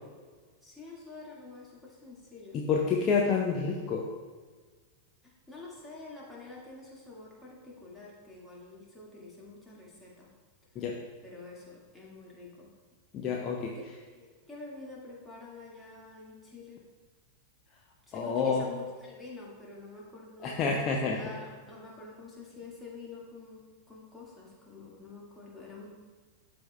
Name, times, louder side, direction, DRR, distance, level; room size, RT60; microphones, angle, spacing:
voice 1, 0.6-2.6 5.2-10.3 11.2-12.8 14.1-16.8 18.1-23.6 23.9-25.9, left 3 dB, 10° left, -5 dB, 1.9 m, -47 dB
voice 2, 2.5-4.1 10.7-10.9 13.1-13.7 18.1-18.6 20.4-21.2, left 5 dB, 30° left, -1 dB, 0.7 m, -28 dB
12.5 x 4.5 x 2.3 m, 1.5 s
figure-of-eight pair, 90°, 0 cm